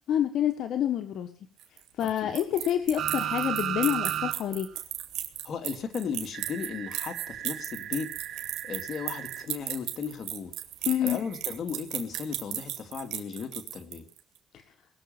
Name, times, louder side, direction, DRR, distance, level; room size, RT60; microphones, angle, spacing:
voice 1, 0.1-1.3 2.0-4.7 10.8-11.2 14.5-14.6, left 10 dB, 75° left, 7 dB, 1.5 m, -27 dB
sound 1, 1.6-14.2, right 13 dB, 90° right, 2.4 m, -35 dB
voice 2, 2.0-2.3 5.4-10.5 11.0-14.1, left 6 dB, 60° left, 7 dB, 2.8 m, -36 dB
sound 2, 3.0-4.4 4.7-4.8 6.3-9.5 11.2-11.3, right 10 dB, 65° right, 1.3 m, -34 dB
20.5 x 7.2 x 7.4 m, 0.42 s
cardioid pair, 90°, 0 cm